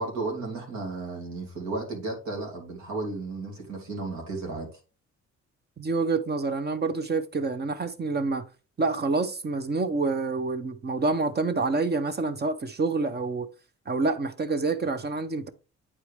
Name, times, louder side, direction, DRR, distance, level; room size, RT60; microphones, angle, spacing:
voice 1, 0.0-4.8, right 3 dB, 70° right, 2.9 m, -34 dB
voice 2, 5.8-8.4 8.8-13.5 13.9-15.5, right 3 dB, 35° right, 0.9 m, -27 dB
8.6 x 4.7 x 3.4 m
cardioid pair, 90°, 30 cm